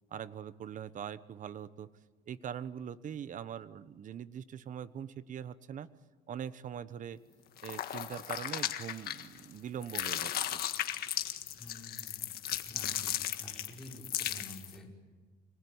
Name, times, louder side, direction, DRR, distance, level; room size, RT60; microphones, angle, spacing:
voice 1, 0.1-1.9 2.3-5.9 6.3-7.2 7.6-10.6, right 8 dB, 50° right, 14 dB, 1.1 m, -42 dB
sound 1, 7.6-9.5 9.8-14.8, left 11 dB, 65° left, 1.7 m, -36 dB
voice 2, 11.6-13.1 13.4-14.9, left 1 dB, ahead, -2 dB, 5.9 m, -50 dB
25.5 x 19.5 x 9.7 m, 1.4 s
cardioid pair, 110°, 17 cm